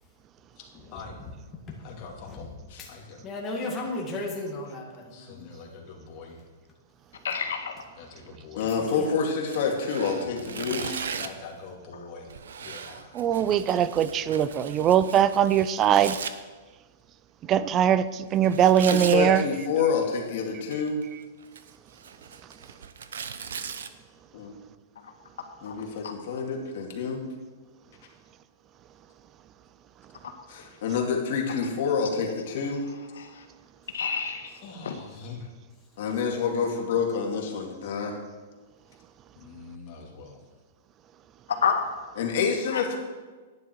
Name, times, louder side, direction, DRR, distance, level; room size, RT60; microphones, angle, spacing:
voice 1, 0.6-1.2 1.8-2.5 2.9-3.2 5.0-6.4 8.0-8.7 10.0-10.9 11.1-14.3 18.5-18.7 34.6-35.5 39.3-40.4, left 4 dB, 35° left, 2.6 m, -45 dB
voice 2, 3.2-5.5 8.6-9.1, left 2 dB, 20° left, 2.0 m, -35 dB
voice 3, 7.2-7.8 25.6-26.1 33.2-33.4 33.9-34.6 34.8-34.9 41.5-41.8 42.7-42.8, left 6 dB, 90° left, 1.7 m, -29 dB
voice 4, 8.6-11.2 18.8-21.0 24.3-24.5 25.6-27.2 30.5-32.8 36.0-38.2 42.2-43.0, left 5 dB, 55° left, 2.4 m, -28 dB
Tearing, 9.4-11.5 12.3-16.3 18.4-19.2 20.5-21.0 21.4-23.9, right 7 dB, 90° right, 0.8 m, -38 dB
voice 5, 13.1-16.2 17.5-19.5, right 9 dB, 25° right, 0.4 m, -21 dB
11.0 x 9.8 x 4.6 m
hypercardioid pair, 160°, 0 cm